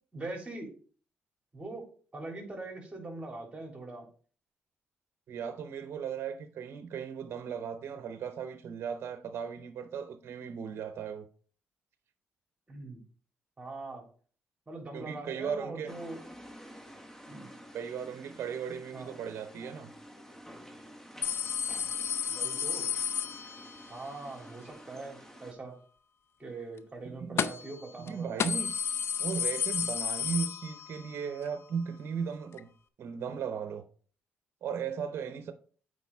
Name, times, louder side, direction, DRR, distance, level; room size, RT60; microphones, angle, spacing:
voice 1, 0.1-0.7 1.5-1.9 2.1-4.1 12.7-13.0 13.6-14.0 14.7-16.2 17.3-17.5 18.9-19.1 22.3-22.9 23.9-25.8 26.4-28.6, right 2 dB, 25° right, 3.4 m, -42 dB
voice 2, 5.3-11.3 14.9-15.9 17.7-19.9 27.0-27.5 28.0-28.7 29.2-32.7 33.0-33.8 34.6-35.5, right 7 dB, 65° right, 0.7 m, -36 dB
sound 1, 15.9-25.5, equal, 10° left, 1.3 m, -50 dB
sound 2, 21.2-23.9 27.4-27.8 28.1-28.2 28.4-31.1 31.5-31.6 32.6-32.7, left 8 dB, 65° left, 0.5 m, -32 dB
8.2 x 5.0 x 3.5 m
supercardioid pair, 65°, 5 cm